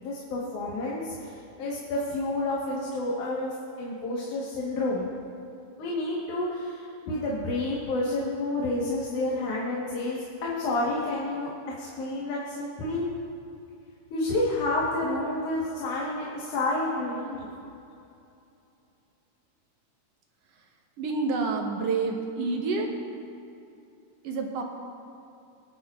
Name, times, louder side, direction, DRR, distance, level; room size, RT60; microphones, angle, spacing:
voice 1, 0.0-5.1 5.8-11.5 11.8-13.1 14.1-17.5, left 2 dB, 75° left, -5 dB, 2.9 m, -30 dB
voice 2, 21.0-22.9 24.2-24.6, right 4 dB, 65° right, 1 dB, 1.9 m, -28 dB
23.5 x 9.6 x 2.5 m, 2.7 s
omnidirectional pair, 3.5 m